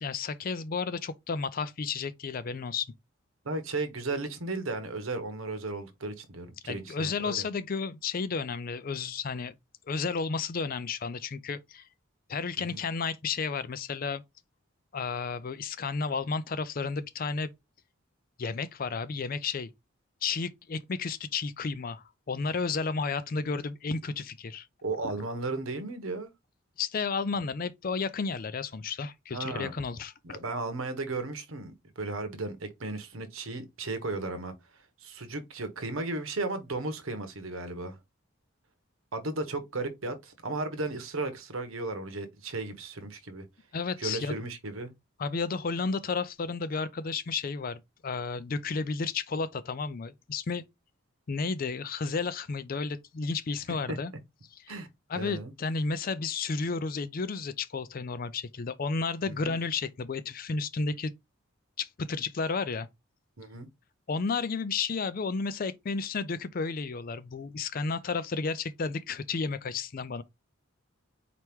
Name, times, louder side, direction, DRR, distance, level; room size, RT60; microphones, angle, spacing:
voice 1, 0.0-2.9 6.7-9.5 9.9-11.8 12.3-14.2 14.9-17.5 18.4-19.7 20.2-24.7 26.8-30.4 43.7-44.3 45.2-50.6 51.3-54.1 54.5-54.8 55.1-61.1 61.8-62.9 64.1-70.2, left 4 dB, 40° left, 0.4 m, -32 dB
voice 2, 3.4-7.5 12.7-12.8 24.8-26.3 29.3-29.7 30.2-34.5 35.0-38.0 39.1-43.4 44.0-44.9 53.9-54.0 54.7-54.9 55.1-55.5 59.3-59.5 63.4-63.7, right 2 dB, 75° right, 1.1 m, -35 dB
4.5 x 2.9 x 3.5 m
head